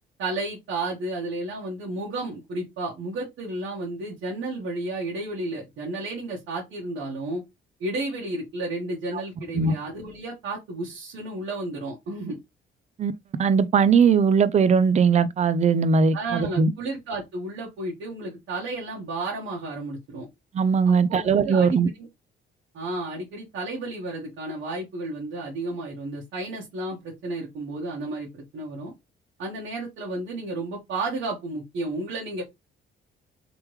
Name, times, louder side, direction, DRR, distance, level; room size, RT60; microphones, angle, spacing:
voice 1, 0.2-7.4 7.8-12.4 16.1-20.3 20.8-21.7 22.0-22.1 22.7-28.9 29.4-32.4, right 2 dB, 80° right, 1.4 m, -32 dB
voice 2, 13.4-16.7 20.5-21.9, right 5 dB, 35° right, 0.4 m, -20 dB
3.4 x 3.2 x 3.1 m
cardioid pair, 90°, 20 cm